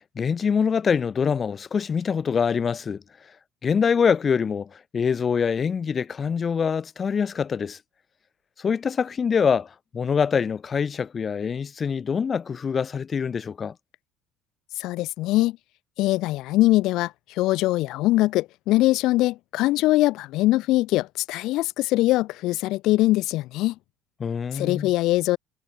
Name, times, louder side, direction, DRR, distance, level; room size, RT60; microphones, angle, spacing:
voice 1, 0.0-3.0 3.6-7.8 8.6-13.7 24.2-24.9, left 6 dB, 35° left, 6.9 m, -24 dB
voice 2, 14.8-15.6 16.0-17.1 17.4-23.7 24.5-25.4, left 17 dB, 55° left, 5.1 m, -22 dB
figure-of-eight pair, 60°, 0 cm